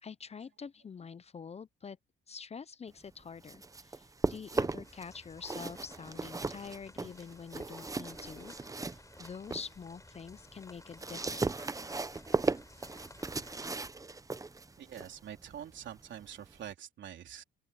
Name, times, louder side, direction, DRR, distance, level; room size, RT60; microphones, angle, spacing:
voice 1, 0.0-2.0 2.3-11.7, left 6 dB, 30° left, 0.6 m, -46 dB
sound 1, 3.2-5.0 5.4-9.7 10.1-16.7, right 3 dB, 15° right, 0.8 m, -37 dB
sound 2, 4.8-13.7, left 2 dB, 15° left, 4.1 m, -56 dB
voice 2, 14.8-17.4, right 10 dB, 70° right, 3.7 m, -45 dB
open air
cardioid pair, 90°, 20 cm